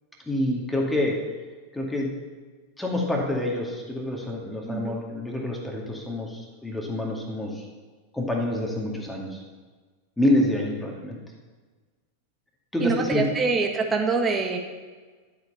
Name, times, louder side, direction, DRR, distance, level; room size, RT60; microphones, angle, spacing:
voice 1, 0.3-1.1 1.7-2.1 2.8-7.6 8.1-9.4 10.2-11.2 12.7-13.2, left 1 dB, 5° left, -1 dB, 2.3 m, -27 dB
voice 2, 4.6-4.9 12.8-14.6, right 4 dB, 20° right, 3 dB, 1.6 m, -25 dB
12.0 x 8.2 x 5.7 m, 1.4 s
figure-of-eight pair, 90°, 0 cm